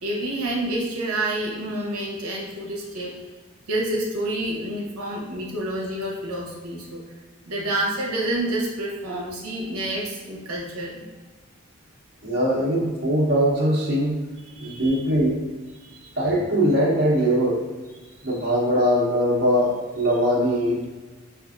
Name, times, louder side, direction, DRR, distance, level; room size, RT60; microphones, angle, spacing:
voice 1, 0.0-3.2 3.7-7.0 7.5-11.0 14.5-14.9 15.8-16.2 18.0-18.4, right 1 dB, 85° right, -3 dB, 0.7 m, -29 dB
voice 2, 12.2-14.3 14.6-15.4 16.2-17.6 18.2-20.8, equal, 45° right, -5 dB, 0.8 m, -21 dB
5.1 x 2.5 x 2.4 m, 1.2 s
head